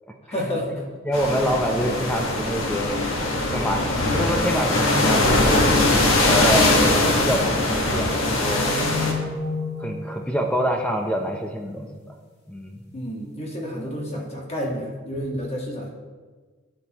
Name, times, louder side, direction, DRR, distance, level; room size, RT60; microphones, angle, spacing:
voice 1, 0.3-0.8 12.9-15.9, equal, 30° left, -2 dB, 1.4 m, -30 dB
voice 2, 1.0-2.9 3.5-5.6 6.2-8.8 9.8-11.9 12.5-12.8 13.8-13.9, equal, 5° left, 2 dB, 0.5 m, -26 dB
sound 1, 1.1-9.1, left 2 dB, 75° left, 1.4 m, -21 dB
sound 2, 8.2-11.6, left 3 dB, 50° left, 1.6 m, -32 dB
12.5 x 6.6 x 2.9 m, 1.4 s
head